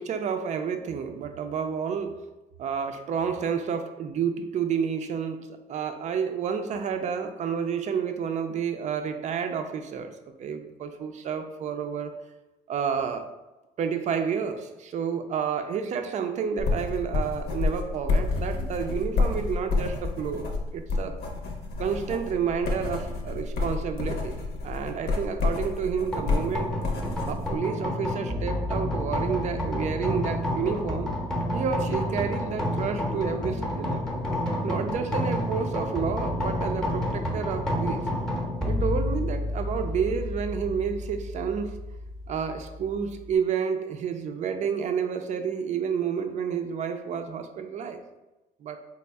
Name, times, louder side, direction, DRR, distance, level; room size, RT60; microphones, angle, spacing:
voice 1, 0.0-2.3 2.6-12.1 12.7-13.3 13.8-21.2 21.8-26.8 27.3-31.1 31.5-34.0 34.6-38.0 38.7-41.8 42.3-48.0 48.6-48.8, right 7 dB, 45° right, 7 dB, 0.4 m, -30 dB
sound 1, 16.6-27.5, left 3 dB, 65° left, 0.7 m, -29 dB
sound 2, 26.1-43.3, left 1 dB, 5° left, 0.7 m, -30 dB
4.1 x 2.0 x 3.3 m, 1.0 s
cardioid pair, 110°, 17 cm